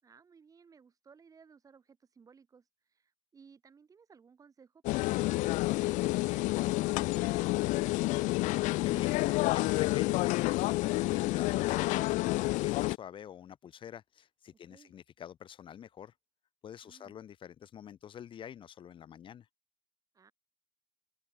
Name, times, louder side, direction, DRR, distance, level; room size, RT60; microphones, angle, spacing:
voice 1, 0.0-8.4 14.7-14.9 16.8-17.2 20.1-20.3, right 6 dB, 25° right, 4.6 m, -59 dB
sound 1, 4.8-13.0, left 20 dB, 60° left, 0.5 m, -29 dB
voice 2, 8.8-16.1 16.6-19.5, left 9 dB, 35° left, 2.4 m, -47 dB
open air
cardioid pair, 135°, 14 cm